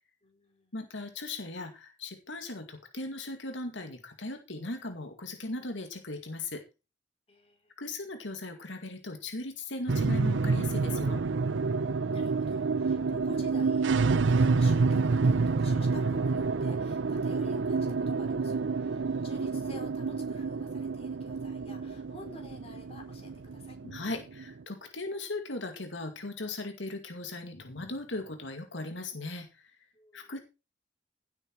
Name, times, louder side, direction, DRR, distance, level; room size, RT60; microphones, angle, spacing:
voice 1, 0.2-0.7 7.3-7.7 12.1-23.8 29.9-30.3, equal, 30° left, 3 dB, 4.6 m, -50 dB
voice 2, 0.7-6.6 7.8-11.2 23.8-29.7 30.1-30.4, left 2 dB, 85° left, 6 dB, 2.1 m, -38 dB
sound 1, 9.9-24.5, right 4 dB, 85° right, 0.6 m, -28 dB
16.5 x 8.3 x 4.7 m, 0.30 s
head